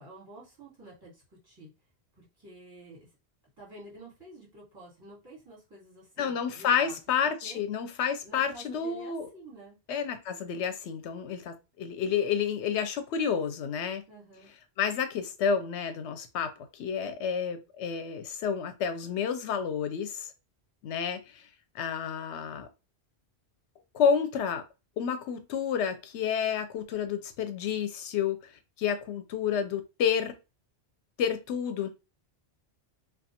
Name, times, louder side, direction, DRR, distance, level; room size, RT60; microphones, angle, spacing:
voice 1, 0.0-1.7 2.2-3.1 3.6-7.0 7.4-7.6 8.2-9.8 14.1-14.5, right 2 dB, 20° right, 1.4 m, -50 dB
voice 2, 6.2-9.3 9.9-14.0 14.8-20.3 20.8-21.4 21.7-22.7 23.9-24.6 25.0-28.5 28.8-30.4 31.2-31.9, left 7 dB, 80° left, 0.9 m, -30 dB
2.4 x 2.2 x 2.7 m
omnidirectional pair, 1.1 m